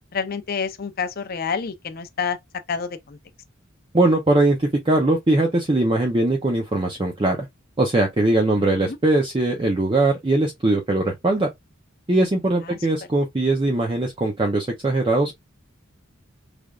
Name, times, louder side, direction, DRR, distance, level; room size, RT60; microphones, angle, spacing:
voice 1, 0.1-2.4 2.7-3.2 8.6-9.0 12.7-12.8, left 6 dB, 45° left, 0.5 m, -28 dB
voice 2, 3.9-7.5 7.8-11.5 12.1-15.4, right 2 dB, 25° right, 0.6 m, -20 dB
3.7 x 3.3 x 2.3 m
head